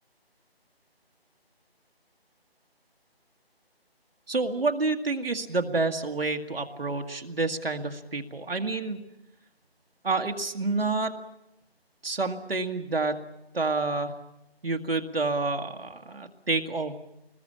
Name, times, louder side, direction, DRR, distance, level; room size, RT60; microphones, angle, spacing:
voice 1, 4.3-9.0 10.0-11.2 12.0-13.2 13.5-14.2 14.6-17.0, right 3 dB, 65° right, 4 dB, 1.9 m, -28 dB
22.0 x 20.5 x 8.6 m, 0.89 s
figure-of-eight pair, 160°, 31 cm